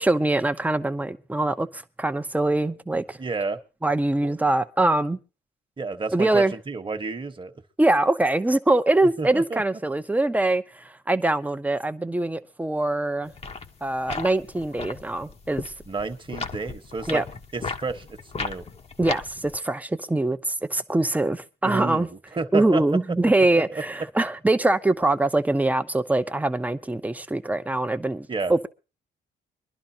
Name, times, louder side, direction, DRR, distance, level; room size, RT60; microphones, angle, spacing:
voice 1, 0.0-3.2 3.8-5.2 6.1-6.5 7.8-13.3 13.8-15.7 17.1-17.2 19.0-22.1 22.5-28.7, right 2 dB, 5° right, 0.7 m, -23 dB
voice 2, 3.2-3.6 4.2-4.3 5.8-7.5 9.2-9.6 15.9-17.2 17.5-18.1 18.4-18.6 21.6-22.1 22.3-22.8 23.5-23.8 28.3-28.5, right 4 dB, 25° right, 1.2 m, -30 dB
sound 1, 13.3-19.6, left 4 dB, 30° left, 0.9 m, -36 dB
24.0 x 11.5 x 2.8 m
cardioid pair, 90°, 20 cm